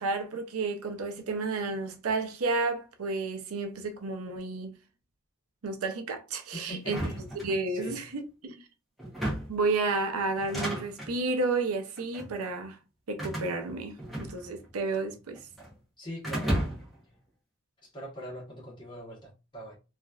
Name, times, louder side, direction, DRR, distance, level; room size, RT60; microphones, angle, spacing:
voice 1, 0.0-4.8 5.6-7.0 7.4-8.7 9.5-12.8 13.1-15.4, right 3 dB, 80° right, 0.5 m, -31 dB
voice 2, 6.5-7.2 7.7-8.0 16.0-16.6 17.8-19.8, equal, 20° left, 1.1 m, -42 dB
sound 1, 6.8-8.0 9.0-9.7 10.3-11.2 12.0-12.4 13.2-14.7 15.0-15.7 16.2-17.0, right 1 dB, ahead, 0.8 m, -34 dB
3.0 x 2.4 x 2.3 m
head